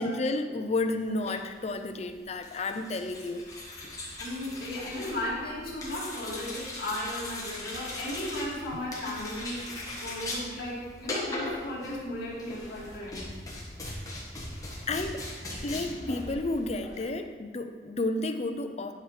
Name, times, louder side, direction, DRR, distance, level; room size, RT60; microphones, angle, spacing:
voice 1, 0.0-3.4 14.9-15.3 15.6-18.9, left 2 dB, 40° left, 7 dB, 0.5 m, -31 dB
sound 1, 1.1-17.1, left 1 dB, 20° left, 1.6 m, -40 dB
voice 2, 4.2-9.7 10.0-13.3, left 1 dB, 60° left, -6 dB, 2.3 m, -35 dB
10.0 x 6.2 x 3.3 m, 1.5 s
head